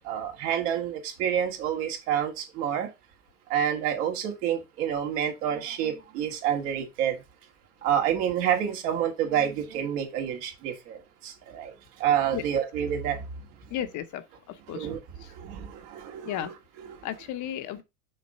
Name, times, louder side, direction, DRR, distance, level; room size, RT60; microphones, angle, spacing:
voice 1, 0.0-2.9 3.5-7.2 7.8-11.7 12.0-13.3 14.7-15.0 15.3-17.0, right 9 dB, 70° right, 2.4 m, -28 dB
voice 2, 13.7-14.2 14.7-14.9 16.2-16.5 17.0-17.8, left 11 dB, 40° left, 0.8 m, -33 dB
6.5 x 3.9 x 5.4 m
supercardioid pair, 120°, 48 cm